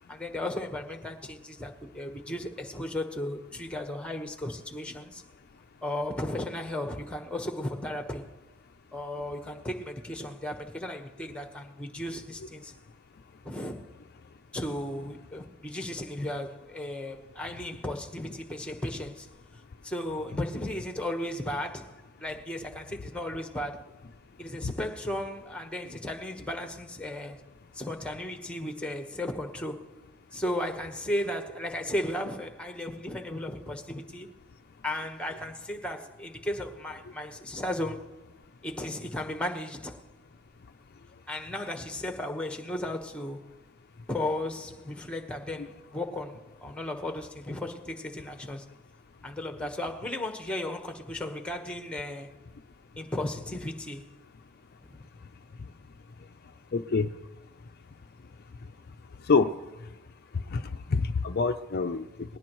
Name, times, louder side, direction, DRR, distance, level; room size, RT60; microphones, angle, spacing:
voice 1, 0.1-5.2 5.8-8.3 8.9-12.7 13.4-13.9 14.5-19.3 19.8-23.9 24.4-27.4 27.7-29.9 30.3-34.3 34.8-38.2 38.6-40.0 41.3-43.4 44.1-48.6 49.2-52.3 53.0-54.0 54.9-55.0, left 1 dB, 5° left, 1.2 m, -35 dB
voice 2, 56.7-57.1 59.3-59.5 60.5-60.6 60.9-62.4, left 4 dB, 45° left, 0.5 m, -26 dB
20.0 x 17.5 x 3.1 m
head